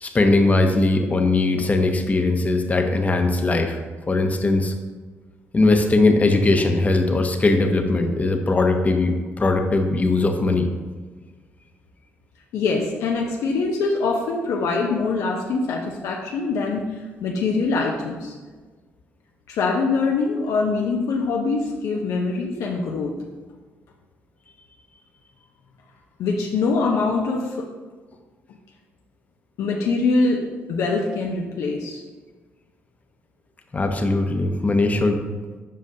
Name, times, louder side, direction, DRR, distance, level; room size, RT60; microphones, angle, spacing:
voice 1, 0.0-3.8 4.1-4.7 5.5-10.7 33.7-35.2, left 2 dB, 30° left, 5 dB, 0.8 m, -20 dB
voice 2, 12.5-16.9 17.2-18.3 19.5-23.1 26.2-27.7 29.6-32.0, left 3 dB, 80° left, -1 dB, 0.7 m, -23 dB
7.4 x 5.1 x 2.8 m, 1.4 s
cardioid pair, 80°, 5 cm